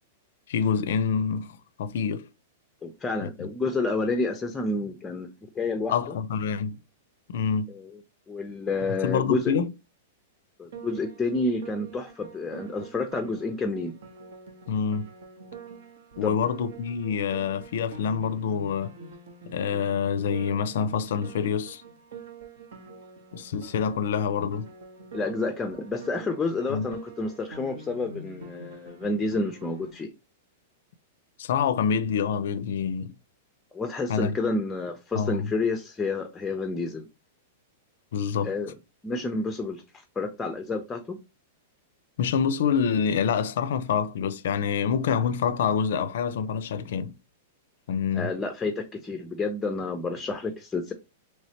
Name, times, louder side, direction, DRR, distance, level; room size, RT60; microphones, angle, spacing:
voice 1, 0.5-2.3 3.2-3.5 5.9-6.8 7.3-7.7 9.0-9.7 14.7-15.1 16.2-18.9 19.5-21.8 23.3-24.7 26.7-26.9 31.4-33.1 34.1-34.4 35.1-35.5 38.1-38.5 42.2-47.1 47.9-48.3, left 7 dB, 70° left, 0.4 m, -26 dB
voice 2, 2.8-6.2 7.7-8.0 8.3-9.5 10.6-13.9 16.2-16.5 25.1-30.1 33.7-37.1 38.4-38.8 39.0-41.2 48.1-50.9, left 3 dB, 10° left, 0.4 m, -29 dB
Piano, 10.7-29.9, right 4 dB, 75° right, 0.9 m, -46 dB
3.1 x 3.1 x 2.8 m
hypercardioid pair, 140°, 0 cm